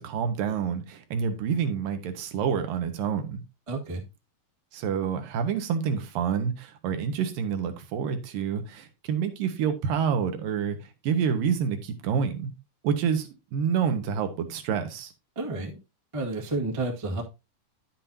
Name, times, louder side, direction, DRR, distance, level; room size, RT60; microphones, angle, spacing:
voice 1, 0.0-3.4 4.7-10.8 11.0-12.5 12.8-15.1, right 7 dB, 80° right, 2.8 m, -28 dB
voice 2, 3.7-4.0 15.3-15.8 16.1-17.2, right 2 dB, 30° right, 0.5 m, -30 dB
10.0 x 7.5 x 2.7 m
omnidirectional pair, 4.0 m